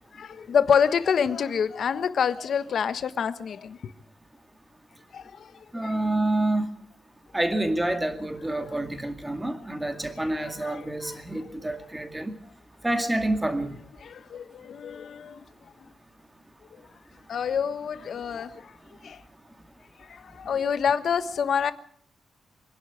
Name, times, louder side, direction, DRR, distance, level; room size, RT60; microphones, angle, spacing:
voice 1, 0.1-3.8 5.1-6.0 10.4-11.2 14.0-15.4 17.3-18.7 19.0-19.2 20.0-21.7, left 7 dB, 55° left, 1.3 m, -27 dB
voice 2, 5.7-6.7 7.3-12.4 12.8-13.8, right 1 dB, 10° right, 2.2 m, -28 dB
24.5 x 11.5 x 9.4 m
wide cardioid pair, 155°, 0 cm